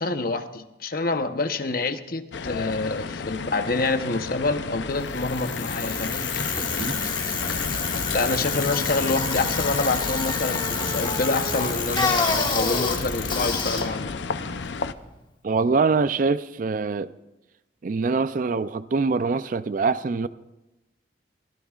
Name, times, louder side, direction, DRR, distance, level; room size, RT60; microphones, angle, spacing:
voice 1, 0.0-6.2 8.1-14.1, left 3 dB, 50° left, 0.9 m, -27 dB
sound 1, 2.3-14.9, left 4 dB, 70° left, 0.6 m, -32 dB
Bicycle, 5.1-15.1, left 4 dB, 25° left, 1.5 m, -28 dB
voice 2, 6.8-7.1 15.4-17.1 17.8-20.3, right 4 dB, 45° right, 0.4 m, -24 dB
24.0 x 16.0 x 2.4 m
head